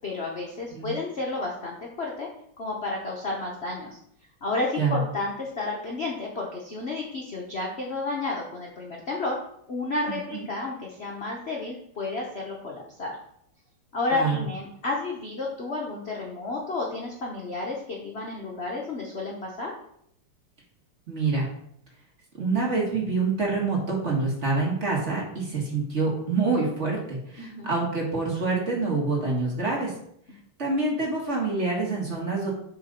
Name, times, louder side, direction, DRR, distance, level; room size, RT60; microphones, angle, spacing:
voice 1, 0.0-2.3 2.6-4.0 4.4-9.4 9.7-13.2 13.9-19.7 27.4-27.7, left 3 dB, 50° left, -2 dB, 0.8 m, -31 dB
voice 2, 10.1-10.5 14.1-14.4 21.1-21.5 22.4-29.9 30.6-32.5, right 3 dB, 35° right, -2 dB, 1.6 m, -26 dB
7.2 x 3.9 x 5.2 m, 0.71 s
omnidirectional pair, 2.4 m